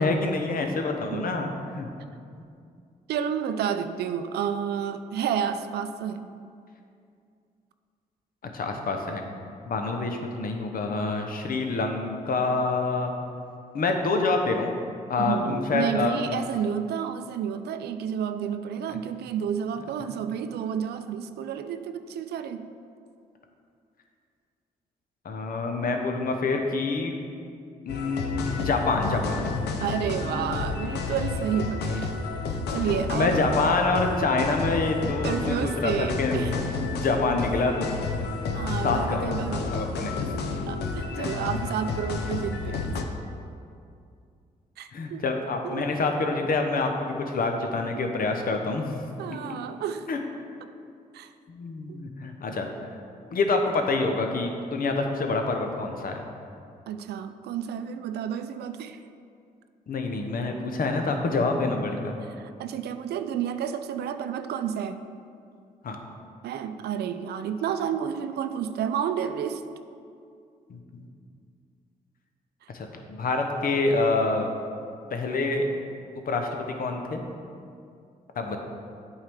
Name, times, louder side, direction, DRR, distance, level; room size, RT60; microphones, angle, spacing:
voice 1, 0.0-1.9 8.5-9.2 9.7-13.1 13.7-14.7 15.1-16.5 25.2-27.2 27.9-29.4 33.1-36.4 36.8-38.0 38.8-40.3 41.2-41.3 44.9-49.0 49.5-49.6 50.1-50.2 51.5-52.9 53.3-56.2 59.9-62.2 65.8-66.0 70.7-71.1 72.7-74.5 75.1-75.7 76.3-77.2 78.4-78.6, left 3 dB, 60° left, 4 dB, 0.9 m, -27 dB
voice 2, 3.1-6.3 15.2-22.7 29.8-32.1 32.5-33.3 35.0-36.6 38.5-39.7 40.7-43.0 44.8-45.2 45.6-45.9 49.2-50.1 51.1-51.3 51.9-52.0 56.9-59.0 62.2-65.0 66.4-69.7 72.6-72.7, right 8 dB, 75° right, 10 dB, 0.4 m, -30 dB
sound 1, 27.9-43.0, left 4 dB, 80° left, 0.6 m, -31 dB
8.7 x 4.6 x 3.6 m, 2.4 s
supercardioid pair, 50°, 17 cm